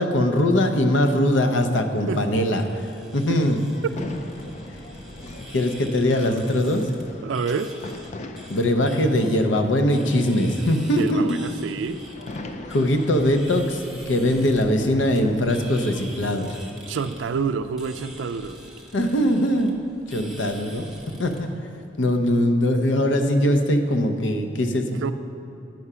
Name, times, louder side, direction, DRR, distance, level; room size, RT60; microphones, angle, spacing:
voice 1, 0.0-2.9 3.1-3.6 5.5-6.8 8.5-11.3 12.7-16.6 18.9-19.8 20.1-20.9 21.2-21.5 22.0-25.0, left 1 dB, 75° left, 6 dB, 0.7 m, -21 dB
sound 1, 0.9-13.4, left 2 dB, 40° left, 0.4 m, -42 dB
sound 2, 2.1-21.4, right 1 dB, 5° right, 0.8 m, -44 dB
voice 2, 7.2-7.7 10.9-12.0 16.9-18.6 25.0-25.1, right 5 dB, 75° right, 11 dB, 0.4 m, -28 dB
9.3 x 4.9 x 5.6 m, 2.8 s
head